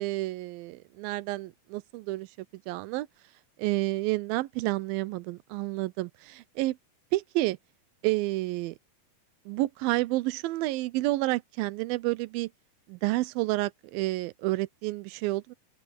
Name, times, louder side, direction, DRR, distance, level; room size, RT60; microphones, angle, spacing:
voice 1, 0.0-2.3 2.7-3.1 3.6-6.8 7.1-7.6 8.0-8.8 9.5-12.5 12.9-15.5, right 19 dB, 85° right, 2.4 m, -30 dB
omnidirectional pair, 4.1 m